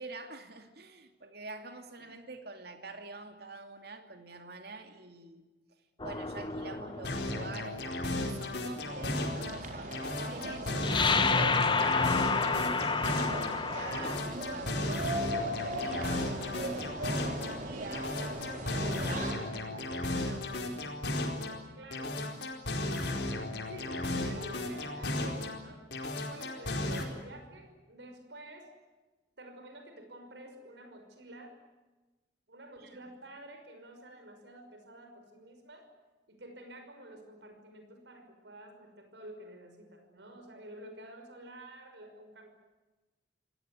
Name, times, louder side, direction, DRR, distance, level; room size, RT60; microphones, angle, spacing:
voice 1, 0.0-5.5 6.0-10.7 11.3-18.1 18.6-20.6 21.4-21.8 32.8-33.1, right 3 dB, 65° right, 6 dB, 2.7 m, -46 dB
sound 1, 6.0-7.9 10.8-14.2, left 4 dB, 30° left, 1.2 m, -30 dB
sound 2, 7.0-9.6 9.9-13.6 13.9-17.6 17.9-21.6 21.9-25.6 25.9-27.0, left 2 dB, 70° left, 4.6 m, -35 dB
sound 3, 8.9-19.3, right 1 dB, 50° right, 4.9 m, -39 dB
voice 2, 21.7-22.4 23.7-25.9 26.3-28.7 29.4-31.6 32.5-35.9 36.3-42.5, right 1 dB, 90° right, 5 dB, 5.8 m, -50 dB
27.5 x 18.0 x 9.9 m, 1.2 s
head